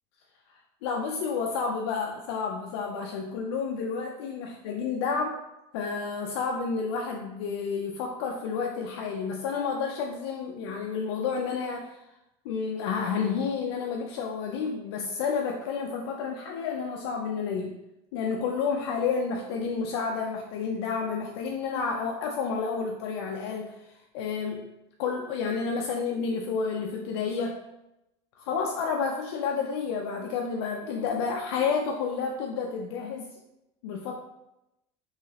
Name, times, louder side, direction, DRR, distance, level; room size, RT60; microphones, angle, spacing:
voice 1, 0.8-5.4 5.7-12.0 12.4-17.7 18.1-23.7 24.1-24.7 25.0-27.6 28.4-33.3 33.8-34.1, left 5 dB, 85° left, 1 dB, 0.4 m, -30 dB
3.1 x 2.8 x 2.7 m, 0.90 s
supercardioid pair, 120°, 13 cm